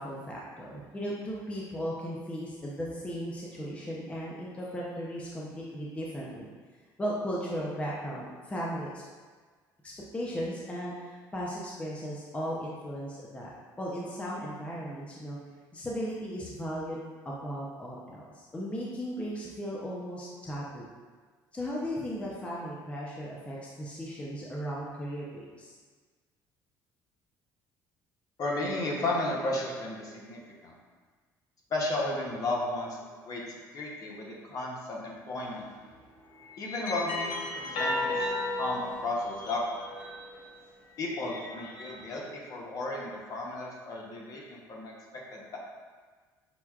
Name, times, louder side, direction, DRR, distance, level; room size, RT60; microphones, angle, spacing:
voice 1, 0.0-6.5 7.0-9.0 9.8-13.5 13.8-15.4 15.7-17.0 17.2-20.9 21.5-25.7, equal, 15° left, -5 dB, 0.5 m, -36 dB
voice 2, 28.4-30.7 31.7-33.0 33.3-33.4 33.7-35.7 36.6-38.3 38.6-39.6 41.0-45.6, left 2 dB, 50° left, -2 dB, 0.8 m, -34 dB
sound 1, 35.4-35.7 36.3-40.5 41.0-42.2, left 2 dB, 85° left, 0.8 m, -35 dB
5.8 x 2.2 x 2.3 m, 1.5 s
cardioid pair, 105°, 8 cm